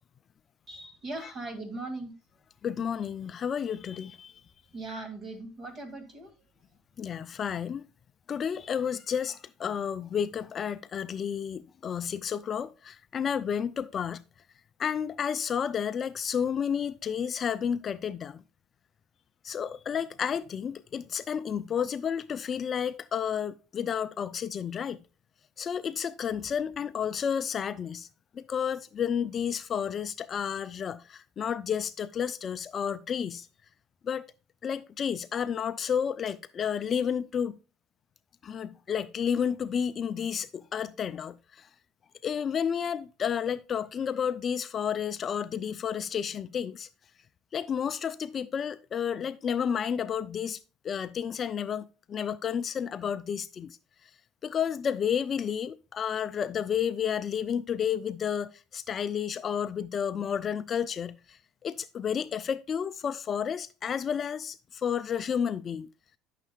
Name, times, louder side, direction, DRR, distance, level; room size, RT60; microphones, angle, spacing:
voice 1, 0.7-2.1 4.7-6.3, right 2 dB, 35° right, 2.0 m, -39 dB
voice 2, 2.6-4.3 7.0-7.8 8.3-14.2 14.8-18.4 19.4-25.0 25.6-28.1 28.3-33.5 34.0-34.2 34.6-37.6 38.4-41.7 42.2-46.9 47.5-50.6 50.8-53.8 54.4-65.9, left 8 dB, 35° left, 0.4 m, -31 dB
9.8 x 6.6 x 2.2 m
supercardioid pair, 110°, 0 cm